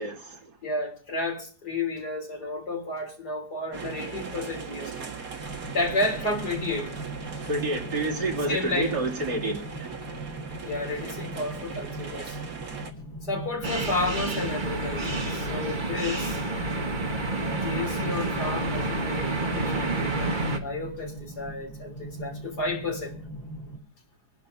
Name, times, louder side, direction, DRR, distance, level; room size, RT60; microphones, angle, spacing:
voice 1, 0.0-0.5 7.5-10.0, right 2 dB, 80° right, 3.4 m, -29 dB
voice 2, 0.6-5.1 5.7-6.9 8.5-9.0 10.6-12.4 13.2-16.4 17.5-23.1, left 2 dB, 80° left, 3.9 m, -32 dB
sound 1, 3.7-12.9, right 6 dB, 60° right, 2.1 m, -39 dB
sound 2, 5.4-23.8, equal, 35° left, 3.0 m, -40 dB
sound 3, 13.6-20.6, right 2 dB, 30° right, 1.5 m, -29 dB
25.5 x 11.0 x 2.6 m
omnidirectional pair, 1.7 m